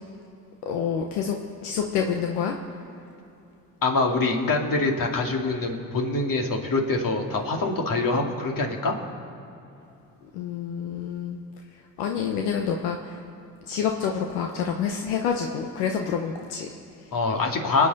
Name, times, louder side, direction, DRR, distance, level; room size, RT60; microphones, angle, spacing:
voice 1, 0.6-2.6 10.3-11.4 12.0-13.2 13.7-17.1, left 7 dB, 85° left, 3 dB, 0.9 m, -28 dB
voice 2, 3.8-8.9 17.1-17.9, left 3 dB, 55° left, 1 dB, 2.4 m, -24 dB
25.5 x 9.1 x 4.1 m, 2.8 s
hypercardioid pair, 55°, 40 cm